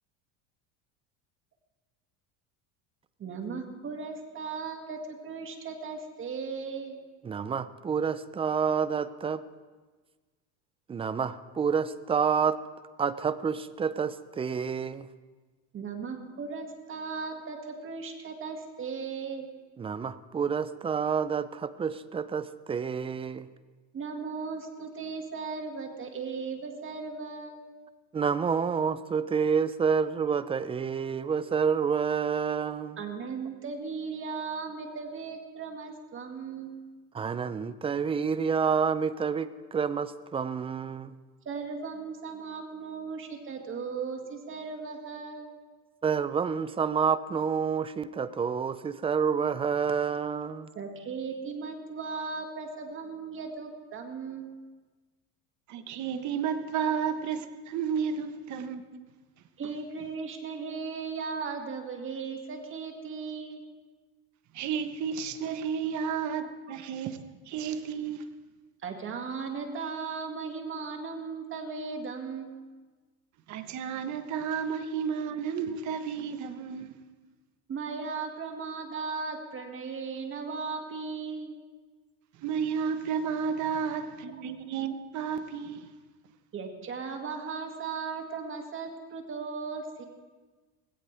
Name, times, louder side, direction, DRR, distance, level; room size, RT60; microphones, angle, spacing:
voice 1, 3.2-7.0 15.7-19.5 23.9-27.6 33.0-36.9 41.5-45.5 50.7-54.5 59.6-63.6 68.8-72.5 77.7-81.6 83.7-83.8 84.3-84.4 86.5-90.0, right 5 dB, 30° right, 2.1 m, -37 dB
voice 2, 7.2-9.4 10.9-12.6 13.0-15.1 19.8-23.5 28.1-33.0 37.1-41.1 46.0-50.7, right 6 dB, 15° right, 0.4 m, -28 dB
voice 3, 55.7-59.0 64.5-67.2 67.5-68.3 73.5-76.9 82.4-85.9, right 7 dB, 50° right, 1.2 m, -32 dB
19.0 x 16.5 x 3.4 m
supercardioid pair, 125°, 38 cm